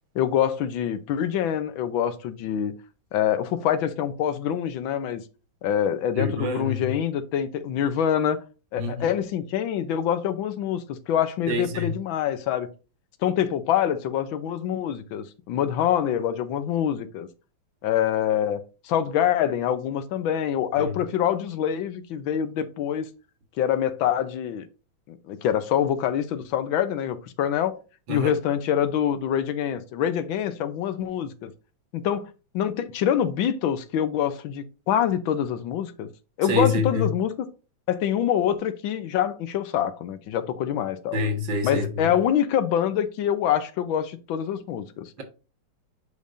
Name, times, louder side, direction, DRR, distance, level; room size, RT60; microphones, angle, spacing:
voice 1, 0.1-2.7 3.1-5.2 5.6-8.4 8.7-12.7 13.2-17.3 17.8-18.6 18.8-23.1 23.6-24.7 25.1-27.8 28.1-31.5 31.9-36.1 36.4-37.5 37.9-41.2 41.6-45.1, left 9 dB, 80° left, 1.5 m, -25 dB
voice 2, 6.1-6.9 8.8-9.1 11.5-12.0 20.8-21.0 28.1-28.4 36.5-37.1 41.1-42.1, left 2 dB, 75° right, 1.9 m, -26 dB
8.0 x 5.2 x 2.5 m
omnidirectional pair, 2.1 m